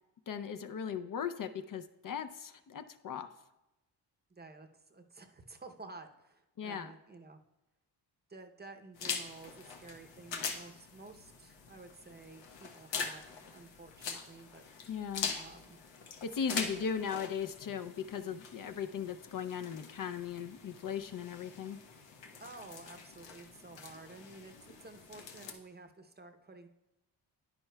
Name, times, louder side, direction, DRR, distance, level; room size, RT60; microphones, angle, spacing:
voice 1, 0.3-3.3 6.6-6.9 14.9-15.3 16.2-21.8, left 7 dB, 50° left, 9 dB, 0.5 m, -38 dB
voice 2, 4.3-7.4 8.3-14.6 15.0-15.1 15.3-15.8 16.4-16.9 22.4-26.7, right 3 dB, 25° right, 6 dB, 0.7 m, -52 dB
sound 1, 8.9-25.5, left 6 dB, 85° left, 1.0 m, -43 dB
10.0 x 9.6 x 2.2 m, 0.95 s
cardioid pair, 75°, 43 cm